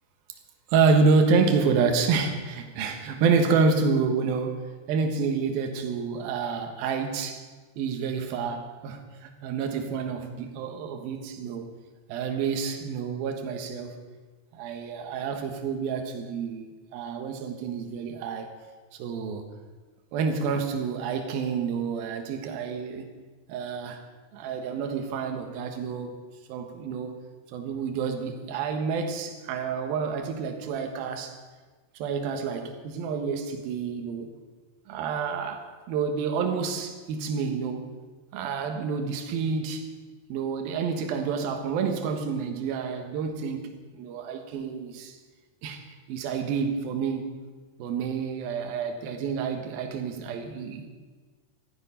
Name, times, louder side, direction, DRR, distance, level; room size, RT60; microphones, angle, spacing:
voice 1, 0.7-7.4 7.8-11.7 12.1-14.0 14.5-18.5 19.0-19.4 20.1-23.1 23.5-24.0 24.3-26.2 26.5-27.2 27.5-31.4 32.0-34.3 34.9-37.9 38.3-39.9 40.3-43.6 43.9-45.2 45.6-45.8 46.1-47.3 47.8-50.9, right 5 dB, 65° right, 5 dB, 2.7 m, -28 dB
14.5 x 12.5 x 5.6 m, 1.4 s
omnidirectional pair, 5.5 m